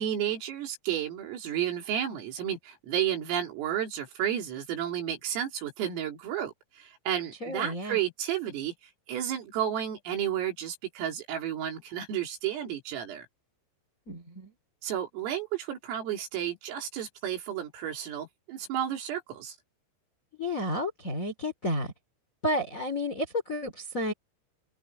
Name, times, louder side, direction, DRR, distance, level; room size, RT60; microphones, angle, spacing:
voice 1, 0.0-8.7 9.1-13.3 14.8-19.6, right 10 dB, 85° right, 6.3 m, -32 dB
voice 2, 7.4-8.0 14.1-14.5 20.4-21.9 22.4-24.1, left 1 dB, 25° left, 1.9 m, -31 dB
omnidirectional pair, 5.9 m